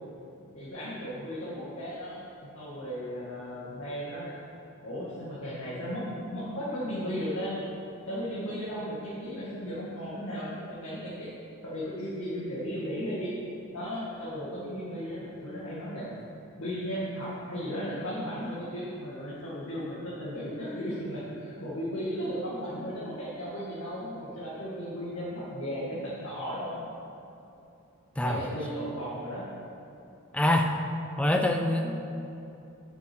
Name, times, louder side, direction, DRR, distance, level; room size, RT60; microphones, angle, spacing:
voice 1, 0.5-4.3 4.8-7.6 8.1-11.3 11.6-13.3 13.7-16.1 16.6-26.8 28.2-29.4 31.8-31.9, equal, 85° left, -9 dB, 1.9 m, -35 dB
voice 2, 30.3-30.7 31.2-32.0, left 1 dB, 5° left, 4 dB, 0.4 m, -25 dB
7.9 x 6.2 x 6.1 m, 2.8 s
head